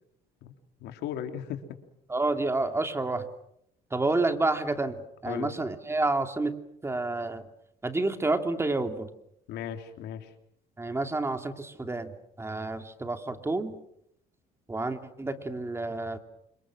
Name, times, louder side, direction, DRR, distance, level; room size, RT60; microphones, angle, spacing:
voice 1, 0.4-1.6 5.3-5.6 9.5-10.3, left 9 dB, 80° left, 6 dB, 3.1 m, -37 dB
voice 2, 2.1-3.3 3.9-4.9 5.2-6.6 6.8-7.4 7.8-9.1 10.8-12.1 12.4-13.8 14.7-16.2, right 2 dB, 15° right, 7 dB, 2.9 m, -29 dB
29.5 x 26.5 x 6.4 m, 0.75 s
cardioid pair, 110°, 17 cm